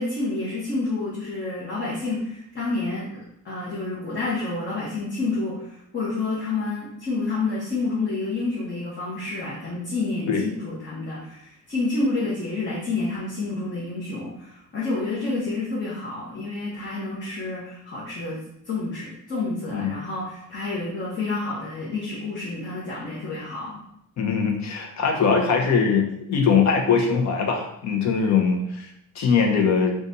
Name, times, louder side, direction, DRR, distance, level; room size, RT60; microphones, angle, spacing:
voice 1, 0.0-18.4 18.6-23.8, left 3 dB, 35° left, -7 dB, 1.1 m, -29 dB
voice 2, 24.2-28.9 29.2-30.0, left 5 dB, 55° left, 2 dB, 0.8 m, -21 dB
3.9 x 2.5 x 4.0 m, 0.74 s
cardioid pair, 140°, 33 cm